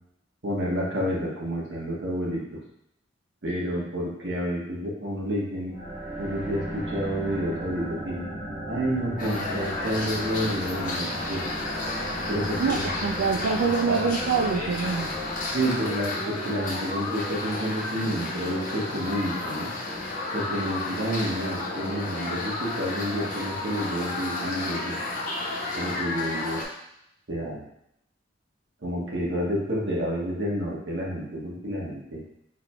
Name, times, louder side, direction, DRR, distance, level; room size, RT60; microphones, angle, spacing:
voice 1, 0.4-2.4 3.4-5.7 6.2-8.2 8.7-11.4 12.3-12.9 13.3-13.4 13.8-14.1 15.5-19.7 20.3-25.0 25.7-26.6 27.3-27.6 28.8-32.2, equal, 65° right, -4 dB, 1.3 m, -29 dB
sound 1, 5.7-16.2, right 1 dB, 10° right, 1.4 m, -36 dB
sound 2, 9.2-26.7, left 2 dB, 45° left, 0.9 m, -32 dB
voice 2, 12.6-15.1, right 5 dB, 85° right, 2 dB, 0.3 m, -25 dB
4.5 x 3.9 x 2.3 m, 0.78 s
head